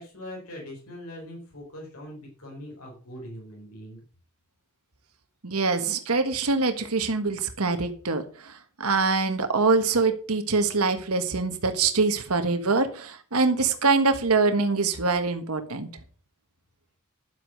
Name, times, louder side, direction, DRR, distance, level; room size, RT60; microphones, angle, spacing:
voice 1, 0.0-4.0, left 1 dB, 80° left, -1 dB, 4.8 m, -41 dB
voice 2, 5.4-8.5 8.8-15.9, right 4 dB, 85° right, 8 dB, 1.5 m, -24 dB
11.5 x 8.2 x 6.5 m, 0.42 s
head